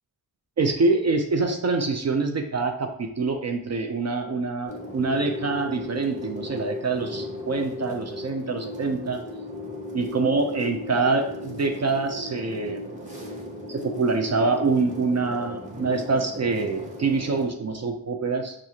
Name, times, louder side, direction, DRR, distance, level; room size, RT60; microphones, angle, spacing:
voice 1, 0.6-9.2 9.9-13.0 13.7-18.6, right 3 dB, 45° right, 4 dB, 0.4 m, -25 dB
sound 1, 4.6-17.5, left 1 dB, 20° right, 0.8 m, -36 dB
6.1 x 2.4 x 2.8 m, 0.72 s
wide cardioid pair, 110°, 37 cm